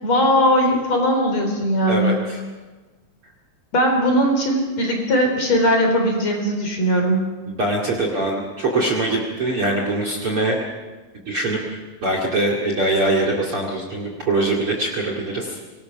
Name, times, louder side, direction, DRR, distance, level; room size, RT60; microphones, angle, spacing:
voice 1, 0.0-2.2 3.7-7.3, equal, 40° left, 2 dB, 4.7 m, -19 dB
voice 2, 1.9-2.4 7.5-10.6 11.3-15.6, right 2 dB, 40° right, 0 dB, 2.7 m, -23 dB
25.5 x 19.5 x 6.0 m, 1.3 s
omnidirectional pair, 4.7 m